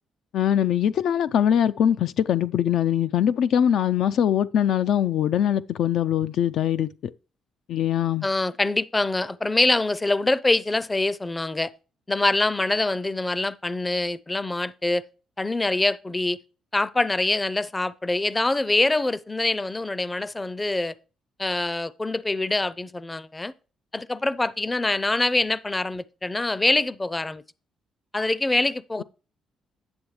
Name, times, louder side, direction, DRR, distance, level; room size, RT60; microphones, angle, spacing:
voice 1, 0.3-7.1 7.7-8.3, left 9 dB, 75° left, 0.4 m, -22 dB
voice 2, 8.2-11.7 12.1-15.0 15.4-16.4 16.7-20.9 21.4-23.5 23.9-27.4 28.1-29.0, left 2 dB, 20° left, 0.5 m, -24 dB
9.6 x 6.9 x 3.2 m
cardioid pair, 90°, 0 cm